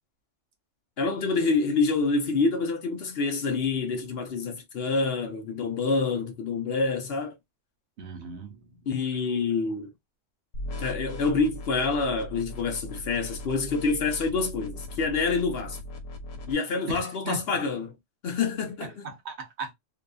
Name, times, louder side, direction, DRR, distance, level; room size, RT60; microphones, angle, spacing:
voice 1, 1.0-7.3 8.9-9.9 10.8-15.8 16.5-17.9 18.2-19.0, left 4 dB, 60° left, 0.8 m, -27 dB
voice 2, 8.0-8.8 16.9-17.4 18.8-19.7, right 3 dB, 65° right, 0.9 m, -37 dB
sound 1, 10.5-16.5, left 1 dB, 90° left, 1.1 m, -38 dB
2.7 x 2.4 x 2.2 m
omnidirectional pair, 1.3 m